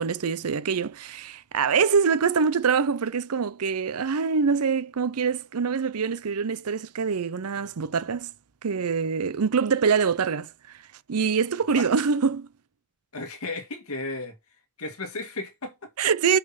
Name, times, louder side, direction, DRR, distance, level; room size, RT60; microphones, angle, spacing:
voice 1, 0.0-8.3 8.6-10.5 11.1-12.5 16.0-16.4, right 6 dB, 85° right, 0.6 m, -24 dB
voice 2, 13.1-14.3 14.8-15.9, left 2 dB, 75° left, 1.9 m, -34 dB
6.6 x 5.8 x 5.7 m
head